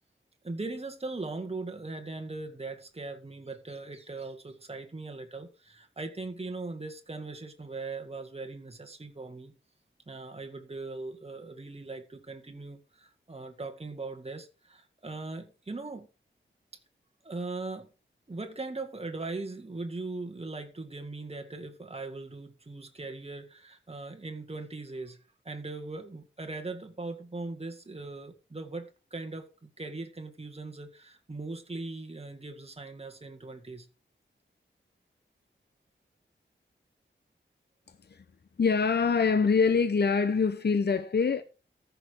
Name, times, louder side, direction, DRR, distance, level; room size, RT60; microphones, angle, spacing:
voice 1, 0.4-9.5 10.1-16.1 17.2-17.9 18.3-25.2 25.4-33.9, right 3 dB, 30° right, 2.0 m, -40 dB
voice 2, 38.6-41.4, left 5 dB, 55° left, 0.8 m, -24 dB
14.0 x 6.6 x 4.7 m
wide cardioid pair, 95°, 21 cm